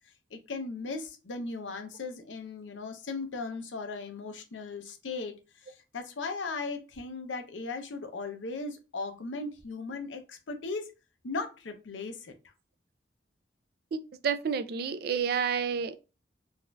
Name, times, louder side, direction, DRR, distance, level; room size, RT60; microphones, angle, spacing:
voice 1, 0.3-5.3 5.6-10.9 11.2-12.3, left 3 dB, 85° left, 0.6 m, -37 dB
voice 2, 13.9-16.0, right 6 dB, 55° right, 0.3 m, -30 dB
4.0 x 2.5 x 2.3 m
head